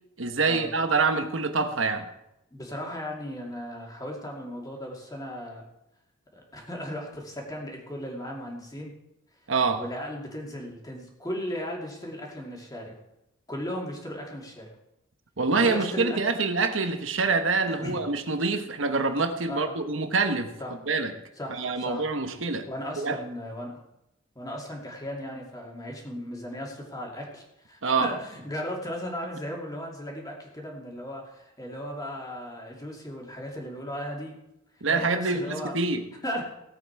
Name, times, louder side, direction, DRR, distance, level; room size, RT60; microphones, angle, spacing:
voice 1, 0.2-2.0 9.5-9.8 15.4-20.5 20.9-21.1 21.5-22.7 23.0-23.2 27.8-28.1 34.8-36.0, right 4 dB, 70° right, 7 dB, 1.2 m, -26 dB
voice 2, 2.5-5.6 6.3-8.9 9.8-13.0 13.5-14.7 15.5-16.2 17.7-18.0 19.5-19.7 20.6-20.8 21.4-22.1 22.7-23.8 24.3-34.4 34.9-35.8 36.2-36.4, equal, 20° left, -1 dB, 2.7 m, -36 dB
17.0 x 8.4 x 4.7 m, 0.89 s
head